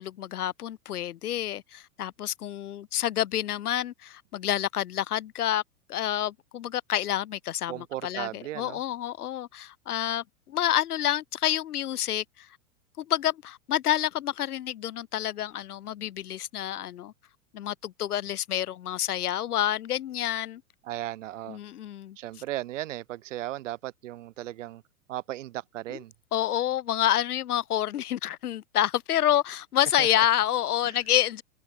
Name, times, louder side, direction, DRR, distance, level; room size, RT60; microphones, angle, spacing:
voice 1, 0.0-5.6 5.9-12.5 13.0-17.1 17.5-20.6 21.5-22.2 25.9-26.0 26.3-31.4, left 11 dB, 90° left, 2.8 m, -28 dB
voice 2, 7.7-8.8 20.8-21.6 22.2-24.8 25.1-26.1 30.0-30.3 30.9-31.0, right 14 dB, 55° right, 7.4 m, -36 dB
supercardioid pair, 175°, 44 cm